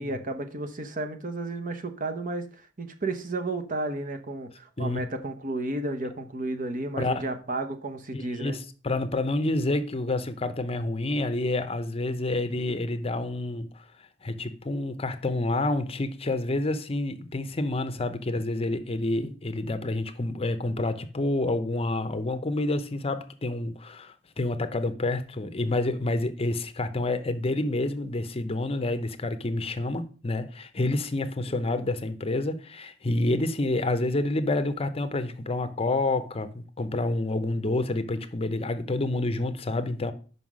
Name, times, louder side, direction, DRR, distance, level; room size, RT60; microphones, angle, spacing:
voice 1, 0.0-8.6 31.5-31.8, right 2 dB, 45° right, 0.9 m, -33 dB
voice 2, 7.0-7.3 8.1-40.1, left 2 dB, 30° left, 0.7 m, -28 dB
5.6 x 5.5 x 6.1 m
head